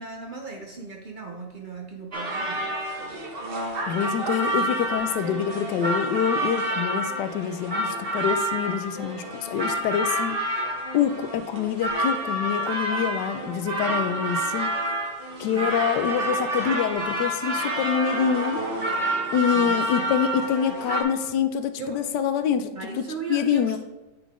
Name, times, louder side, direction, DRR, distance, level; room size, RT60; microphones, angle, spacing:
voice 1, 0.0-2.6 15.3-15.7 19.5-20.1 20.7-21.0 21.8-22.0 22.8-23.8, right 4 dB, 75° right, 1 dB, 0.4 m, -37 dB
sound 1, 2.1-21.0, right 1 dB, 40° right, 1.0 m, -28 dB
voice 2, 3.9-10.4 10.9-14.7 15.4-18.6 19.3-22.7 23.0-23.1 23.3-23.8, left 8 dB, 75° left, 9 dB, 1.2 m, -26 dB
9.3 x 3.8 x 3.6 m, 1.0 s
omnidirectional pair, 1.9 m